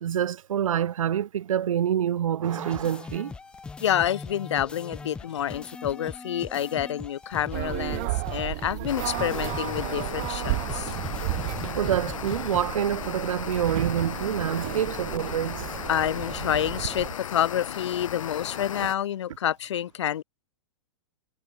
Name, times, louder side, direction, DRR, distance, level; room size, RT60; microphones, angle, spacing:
voice 1, 0.0-3.3 11.8-15.8 18.8-18.9, right 9 dB, 85° right, 1.4 m, -27 dB
sound 1, 2.5-12.7, left 4 dB, 5° left, 2.1 m, -40 dB
voice 2, 3.8-11.0 15.9-20.2, left 10 dB, 60° left, 2.6 m, -28 dB
sound 2, 7.5-17.1, right 28 dB, 25° right, 1.0 m, -33 dB
sound 3, 8.9-19.0, left 9 dB, 85° left, 7.5 m, -36 dB
hypercardioid pair, 180°, 17 cm